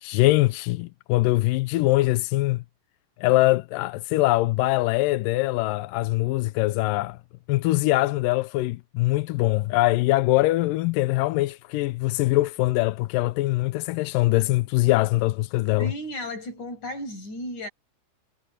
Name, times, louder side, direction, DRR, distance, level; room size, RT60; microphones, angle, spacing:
voice 1, 0.0-2.6 3.2-7.2 7.5-15.9, left 19 dB, 80° left, 2.1 m, -22 dB
voice 2, 15.8-17.7, left 1 dB, 55° left, 8.1 m, -34 dB
omnidirectional pair, 4.2 m